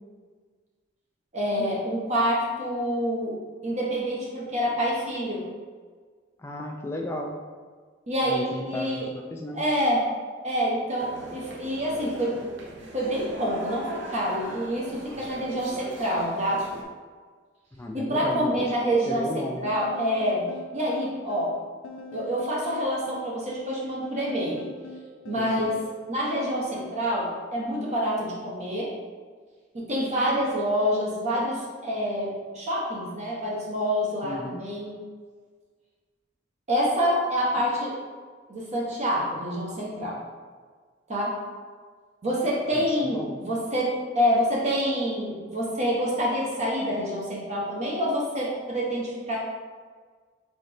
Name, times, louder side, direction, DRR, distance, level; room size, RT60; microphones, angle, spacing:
voice 1, 1.3-3.4 3.6-5.5 8.1-9.1 9.5-10.0 10.4-12.4 12.9-16.6 17.9-20.4 20.7-21.5 22.1-24.6 25.3-25.8 26.1-28.9 29.7-34.9 36.7-38.0 38.5-40.2 41.1-41.3 42.2-49.4, equal, 35° right, -4 dB, 0.8 m, -27 dB
voice 2, 6.4-7.4 8.2-9.6 17.8-19.7 25.4-25.5 34.2-34.6 42.8-43.4, left 1 dB, 15° left, 1 dB, 0.3 m, -34 dB
sound 1, 11.0-16.8, right 2 dB, 65° right, 0.7 m, -41 dB
sound 2, 18.3-27.0, left 2 dB, 85° left, 0.4 m, -44 dB
4.1 x 3.8 x 3.3 m, 1.6 s
head